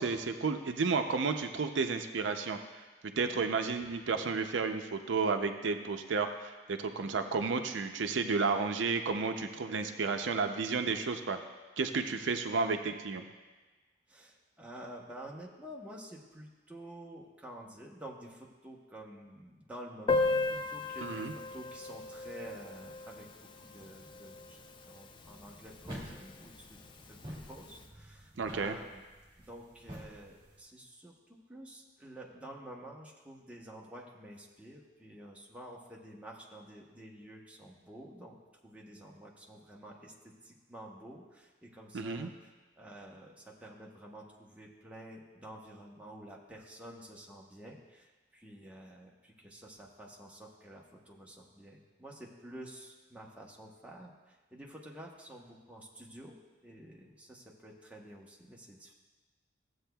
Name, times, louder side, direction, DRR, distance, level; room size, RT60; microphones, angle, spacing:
voice 1, 0.0-2.8 3.2-11.4 11.8-13.2 21.0-21.3 28.4-28.8 41.9-42.3, right 4 dB, 85° right, 7 dB, 0.5 m, -32 dB
voice 2, 14.1-26.8 27.1-29.0 29.4-31.1 31.5-38.4 38.6-56.4 56.6-58.9, right 1 dB, 5° right, -3 dB, 1.0 m, -50 dB
Piano, 20.1-25.4 25.7-25.8 26.0-26.2 26.5-26.6 27.4-27.5, left 3 dB, 25° left, 0.4 m, -35 dB
sound 1, 25.2-30.6, equal, 30° right, 1.8 m, -49 dB
15.0 x 7.9 x 2.3 m, 1.3 s
head